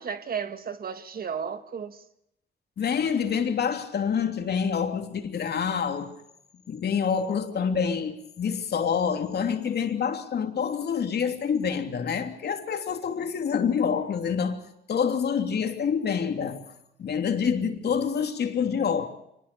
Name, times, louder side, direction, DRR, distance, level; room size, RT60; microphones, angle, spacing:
voice 1, 0.0-2.0, right 6 dB, 50° right, 1.7 m, -34 dB
voice 2, 2.8-6.1 6.7-16.7 17.0-19.1, left 7 dB, 55° left, 3.1 m, -27 dB
24.5 x 20.0 x 6.9 m
cardioid pair, 90°, 20 cm